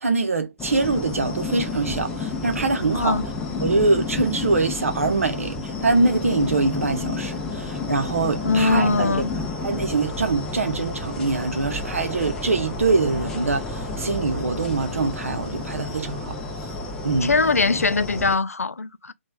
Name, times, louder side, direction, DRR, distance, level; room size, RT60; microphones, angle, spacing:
voice 1, 0.0-3.2 3.6-9.3 9.6-16.4 17.0-17.3, right 3 dB, 70° right, 0.8 m, -24 dB
sound 1, 0.6-18.3, left 3 dB, 10° left, 0.5 m, -31 dB
voice 2, 8.4-9.3 17.2-19.1, left 3 dB, 85° left, 0.4 m, -21 dB
3.1 x 2.3 x 2.3 m
figure-of-eight pair, 140°, 8 cm